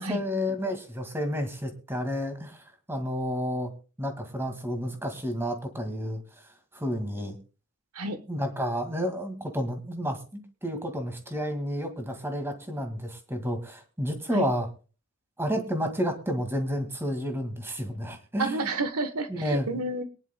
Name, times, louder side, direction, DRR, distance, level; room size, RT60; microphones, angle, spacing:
voice 1, 0.0-3.7 4.0-6.2 6.7-7.4 8.3-14.7 15.4-18.7 19.3-19.8, equal, 10° right, 6 dB, 1.9 m, -31 dB
voice 2, 18.4-20.0, right 2 dB, 85° right, 10 dB, 1.1 m, -30 dB
22.5 x 10.5 x 2.2 m, 0.35 s
head